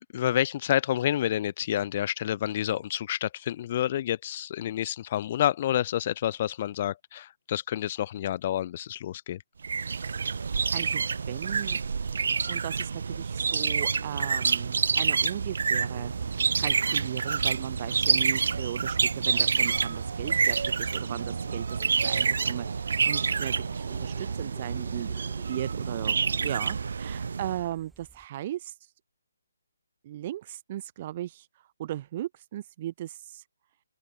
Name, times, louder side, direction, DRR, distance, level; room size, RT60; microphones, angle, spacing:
voice 1, 0.1-9.4, left 11 dB, 30° left, 0.3 m, -29 dB
sound 1, 9.6-27.7, right 5 dB, 60° right, 0.4 m, -28 dB
voice 2, 10.7-11.8 12.5-16.1 16.6-22.8 23.1-25.2 25.5-28.7 30.0-31.5 31.8-33.4, right 13 dB, 30° right, 1.1 m, -37 dB
sound 2, 15.8-28.3, right 3 dB, 5° right, 1.3 m, -57 dB
hypercardioid pair, 165°, 0 cm